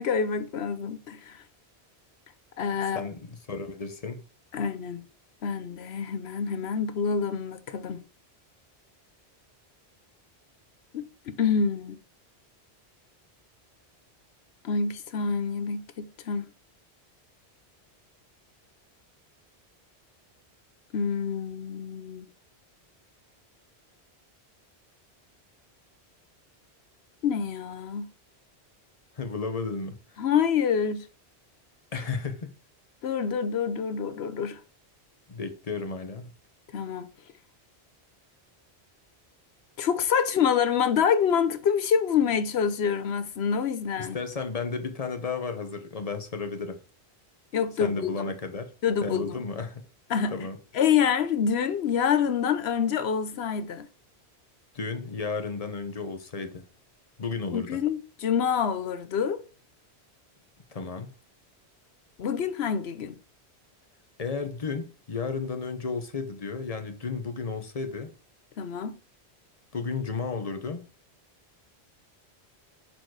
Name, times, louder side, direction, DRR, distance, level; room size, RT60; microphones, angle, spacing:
voice 1, 0.0-1.4 2.6-3.0 4.5-5.0 5.4-8.0 10.9-12.0 14.6-16.5 20.9-22.3 27.2-28.1 30.2-31.1 33.0-34.6 36.7-37.1 39.8-44.2 47.5-48.1 48.8-49.4 50.1-50.3 50.7-53.9 57.5-59.4 62.2-63.1 68.6-68.9, left 7 dB, 75° left, 1.0 m, -27 dB
voice 2, 2.9-4.2 29.1-30.0 31.9-32.5 35.3-36.3 44.0-46.8 47.8-48.7 49.0-49.8 50.3-50.6 54.7-56.6 57.2-57.8 60.7-61.1 64.2-68.1 69.7-70.8, left 4 dB, 35° left, 1.0 m, -33 dB
6.9 x 4.6 x 4.7 m
omnidirectional pair, 1.1 m